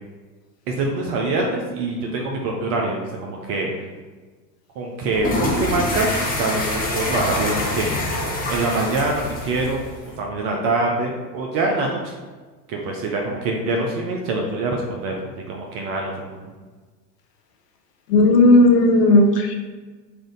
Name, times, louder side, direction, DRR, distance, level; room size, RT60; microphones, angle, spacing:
voice 1, 0.7-3.7 4.8-8.0 8.5-12.1 12.7-15.2 15.5-16.4, right 2 dB, 30° right, 0 dB, 0.4 m, -24 dB
sound 1, 5.1-10.2, left 1 dB, 20° left, 1.0 m, -26 dB
voice 2, 18.1-19.5, left 2 dB, 70° left, 3 dB, 0.8 m, -14 dB
3.5 x 2.4 x 3.7 m, 1.4 s
figure-of-eight pair, 85°, 49 cm